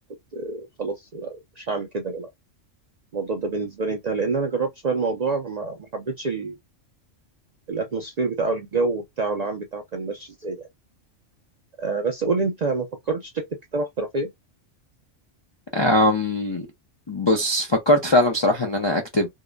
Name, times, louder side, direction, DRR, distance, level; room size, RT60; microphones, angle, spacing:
voice 1, 0.3-2.3 3.1-6.6 7.7-10.7 11.8-13.5 13.7-14.3, right 3 dB, 55° right, 0.4 m, -27 dB
voice 2, 15.7-16.7 17.1-19.3, left 1 dB, 40° left, 0.4 m, -20 dB
2.8 x 2.0 x 2.2 m
omnidirectional pair, 1.3 m